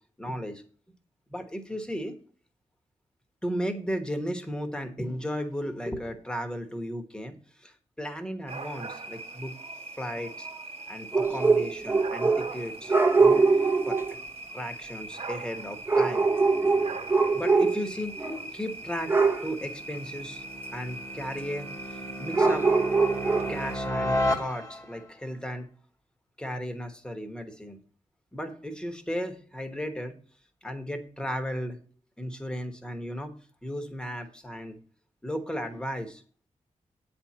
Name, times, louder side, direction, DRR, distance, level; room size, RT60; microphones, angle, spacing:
voice 1, 0.2-0.6 1.3-2.1 3.4-9.6 10.0-10.5 10.9-13.5 13.9-14.0 14.5-16.3 17.3-18.2 18.5-19.1 19.4-20.4 20.7-22.7 23.5-25.7 26.4-27.8 28.3-30.2 30.6-31.8 32.2-33.3 33.6-34.8 35.2-36.2, equal, 5° left, 7 dB, 1.2 m, -35 dB
sound 1, 8.5-23.8, right 2 dB, 50° right, 1.2 m, -41 dB
sound 2, 11.1-12.6 12.9-14.1 15.9-17.9 18.2-18.5 19.1-19.5 22.3-23.6, right 4 dB, 15° right, 0.8 m, -23 dB
sound 3, 18.7-25.1, left 1 dB, 25° left, 1.3 m, -34 dB
9.1 x 4.3 x 7.4 m, 0.42 s
wide cardioid pair, 170°, 13 cm